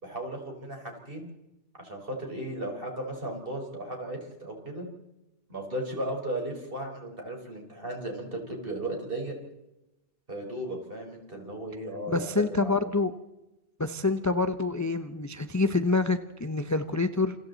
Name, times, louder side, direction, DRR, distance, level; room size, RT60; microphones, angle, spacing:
voice 1, 0.0-1.3 1.8-4.9 5.5-9.3 10.3-12.8, right 1 dB, 50° right, 1 dB, 4.9 m, -36 dB
voice 2, 12.1-13.1 13.8-17.4, left 3 dB, 15° left, 9 dB, 0.7 m, -27 dB
29.0 x 28.5 x 4.1 m, 0.97 s
omnidirectional pair, 1.2 m